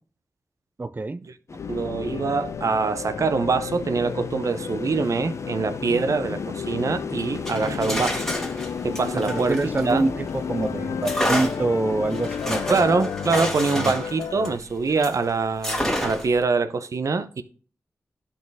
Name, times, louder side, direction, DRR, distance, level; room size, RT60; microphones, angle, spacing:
voice 1, 0.8-1.2 9.3-12.9 13.8-13.9, right 3 dB, 30° right, 0.4 m, -25 dB
sound 1, 1.5-13.0, left 4 dB, 55° left, 0.7 m, -36 dB
sound 2, 1.6-14.6, left 7 dB, 90° left, 0.3 m, -33 dB
voice 2, 1.7-8.2 8.8-10.1 12.7-17.4, right 4 dB, 65° right, 0.7 m, -24 dB
sound 3, 7.3-10.4 11.0-15.2 15.6-16.4, left 1 dB, 10° left, 2.0 m, -29 dB
11.5 x 4.2 x 3.5 m
cardioid pair, 45°, 6 cm